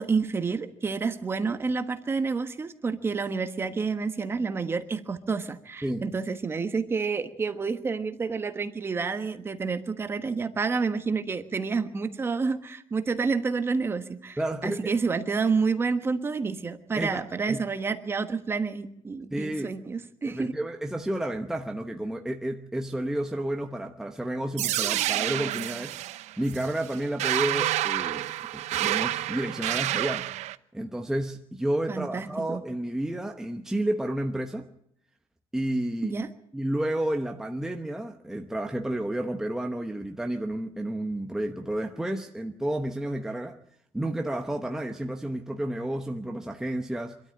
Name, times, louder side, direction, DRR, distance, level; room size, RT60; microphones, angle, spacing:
voice 1, 0.0-20.5 31.9-32.6 36.0-36.3, right 4 dB, 20° right, 1.3 m, -29 dB
voice 2, 14.4-14.9 16.9-17.2 17.5-17.6 19.3-19.7 20.2-26.0 26.4-28.3 28.5-30.3 30.7-34.7 35.5-36.1 36.5-43.6 43.9-47.2, right 1 dB, 5° right, 0.9 m, -31 dB
sound 1, 24.6-30.6, right 15 dB, 75° right, 0.8 m, -29 dB
25.0 x 13.0 x 8.9 m
cardioid pair, 180°, 12 cm